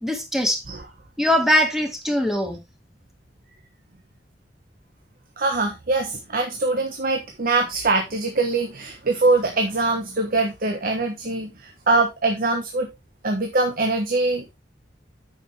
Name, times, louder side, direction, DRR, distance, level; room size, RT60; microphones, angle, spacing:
voice 1, 0.0-0.6 1.2-2.6, equal, ahead, 2.0 m, -21 dB
voice 2, 5.4-12.9 13.2-14.5, right 3 dB, 55° right, 1.3 m, -23 dB
9.1 x 6.7 x 3.3 m
head